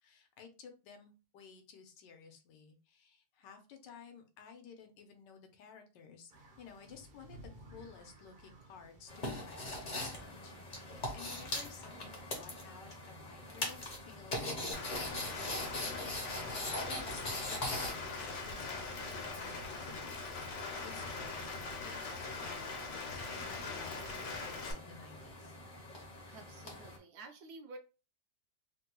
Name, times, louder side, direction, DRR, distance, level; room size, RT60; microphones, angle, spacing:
voice 1, 0.0-20.2 20.6-22.1 22.4-25.6, left 6 dB, 85° left, 5 dB, 1.4 m, -55 dB
sound 1, 6.3-15.4, right 1 dB, 50° right, 0.7 m, -59 dB
sound 2, 9.1-27.0, left 1 dB, 40° left, 0.6 m, -43 dB
Rain, 14.7-24.7, left 3 dB, 65° left, 1.2 m, -42 dB
voice 2, 26.2-27.8, right 3 dB, 70° right, 5 dB, 1.0 m, -51 dB
3.6 x 2.2 x 2.9 m, 0.31 s
omnidirectional pair, 1.9 m